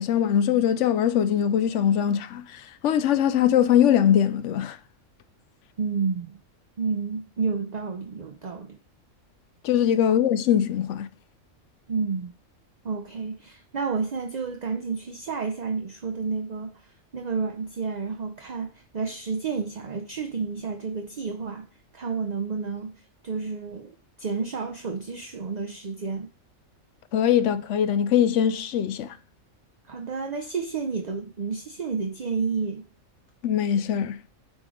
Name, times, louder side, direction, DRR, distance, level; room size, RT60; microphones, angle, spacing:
voice 1, 0.0-4.8 9.6-11.1 27.1-29.2 33.4-34.2, left 9 dB, 70° left, 0.9 m, -22 dB
voice 2, 5.8-6.4 6.8-8.8 11.9-12.3 12.8-16.8 17.1-21.7 21.9-22.9 23.2-23.9 24.2-26.3 29.9-32.9, right 5 dB, 40° right, 0.7 m, -30 dB
8.8 x 3.9 x 5.0 m
omnidirectional pair, 1.4 m